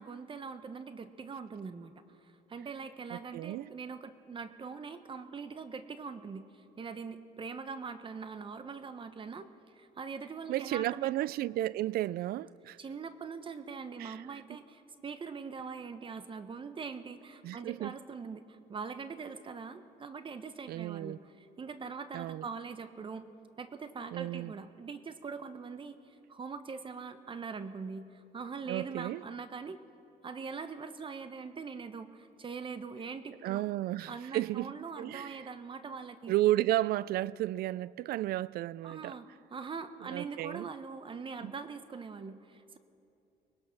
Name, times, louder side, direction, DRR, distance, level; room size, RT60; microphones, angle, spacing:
voice 1, 0.0-1.9 2.5-6.5 6.8-9.5 9.7-11.1 11.4-11.5 12.8-23.3 23.6-29.8 30.2-33.6 34.1-36.3 38.8-42.8, right 5 dB, 30° right, 1.0 m, -42 dB
voice 2, 3.1-3.7 10.5-12.8 14.0-14.2 17.4-18.0 20.7-21.2 22.1-22.4 24.1-24.5 28.6-29.2 33.4-35.4 36.3-39.2 40.0-40.7 41.4-41.5, right 15 dB, 65° right, 0.4 m, -33 dB
24.0 x 20.0 x 5.9 m
cardioid pair, 110°, 17 cm